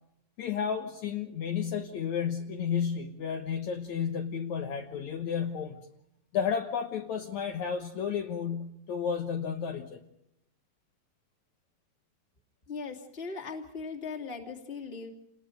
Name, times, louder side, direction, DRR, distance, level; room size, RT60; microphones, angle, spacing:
voice 1, 0.4-5.8 6.3-10.0, left 7 dB, 65° left, 4 dB, 2.2 m, -32 dB
voice 2, 12.7-15.1, left 4 dB, 20° left, 1 dB, 2.2 m, -39 dB
29.5 x 19.5 x 5.2 m, 0.80 s
omnidirectional pair, 4.0 m